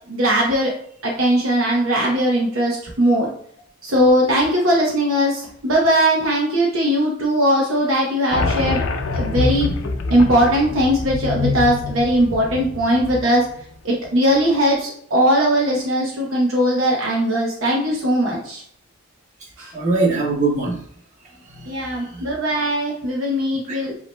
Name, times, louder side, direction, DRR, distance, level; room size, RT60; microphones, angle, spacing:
voice 1, 0.1-0.7 1.0-3.3 3.8-8.8 9.1-9.7 10.1-13.4 13.8-18.6 19.6-19.7 21.6-24.0, equal, 70° right, -2 dB, 0.9 m, -19 dB
sound 1, 8.3-13.6, left 3 dB, 65° left, 0.5 m, -25 dB
voice 2, 19.4-20.9 21.2-22.3 23.7-23.8, right 3 dB, 35° right, -6 dB, 1.6 m, -24 dB
8.0 x 2.8 x 2.2 m, 0.63 s
head